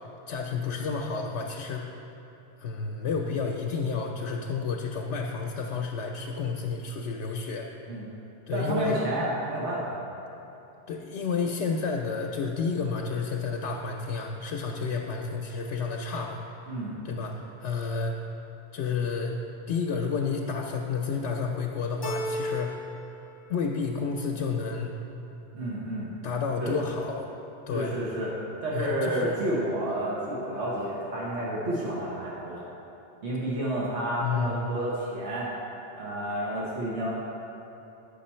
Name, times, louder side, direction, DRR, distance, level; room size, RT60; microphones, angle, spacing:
voice 1, 0.3-1.9 2.6-7.7 8.5-9.0 10.9-16.4 17.0-18.1 18.7-19.3 19.7-22.8 23.5-24.9 26.2-27.3 27.7-27.9 28.7-29.4 34.2-34.6, left 5 dB, 85° left, 0 dB, 0.9 m, -30 dB
voice 2, 8.5-10.0 16.7-17.0 25.5-26.1 26.6-26.7 27.7-28.3 28.6-32.7 33.2-35.5 35.9-37.1, right 1 dB, 75° right, -6 dB, 1.4 m, -30 dB
Keyboard (musical), 22.0-23.1 23.4-24.2, left 1 dB, 45° left, 0.3 m, -34 dB
9.0 x 5.7 x 4.3 m, 3.0 s
omnidirectional pair, 1.1 m